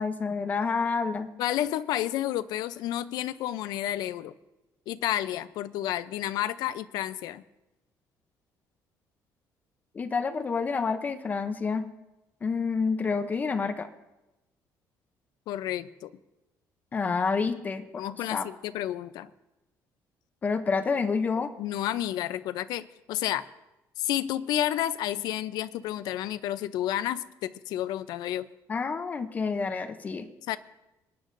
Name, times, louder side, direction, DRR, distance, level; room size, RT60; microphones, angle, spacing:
voice 1, 0.0-1.3 9.9-11.9 12.4-13.9 16.9-18.5 20.4-21.5 28.7-30.3, left 5 dB, 25° left, 9 dB, 0.6 m, -28 dB
voice 2, 1.4-4.3 4.9-7.4 15.5-16.1 18.0-19.3 21.6-23.5 24.0-28.5 30.5-30.6, left 12 dB, 75° left, 14 dB, 0.5 m, -31 dB
28.0 x 9.9 x 2.6 m, 0.99 s
cardioid pair, 175°, 7 cm